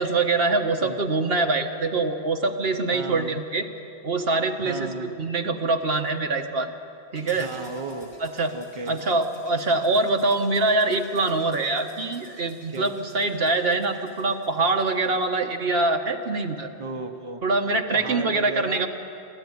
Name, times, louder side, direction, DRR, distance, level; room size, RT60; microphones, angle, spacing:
voice 1, 0.0-3.7 4.0-6.7 7.1-7.5 8.2-8.5 8.9-16.7 17.4-18.9, right 3 dB, 65° right, 5 dB, 1.5 m, -24 dB
voice 2, 2.9-3.4 4.6-5.1 7.3-8.1 8.5-9.0 12.7-12.9 16.8-17.4 17.9-18.9, right 3 dB, 30° right, 5 dB, 1.1 m, -35 dB
sound 1, 7.1-15.2, left 1 dB, 55° left, 5.2 m, -50 dB
26.5 x 13.0 x 9.6 m, 2.8 s
omnidirectional pair, 1.1 m